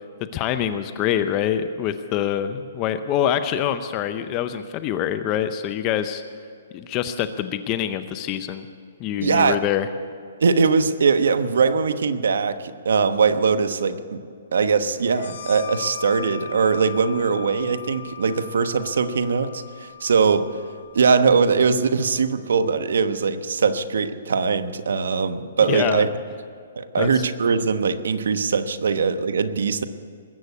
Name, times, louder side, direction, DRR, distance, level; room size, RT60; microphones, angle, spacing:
voice 1, 0.3-6.2 6.7-8.7 9.0-9.9 25.7-26.1 26.9-27.3, left 10 dB, 25° left, 10 dB, 0.6 m, -25 dB
voice 2, 9.2-9.6 10.4-14.2 14.5-20.5 20.9-26.1 26.8-29.8, right 5 dB, 80° right, 10 dB, 1.1 m, -21 dB
sound 1, 15.1-22.4, left 10 dB, 60° left, 2.9 m, -39 dB
20.5 x 8.2 x 8.3 m, 2.4 s
hypercardioid pair, 160°, 0 cm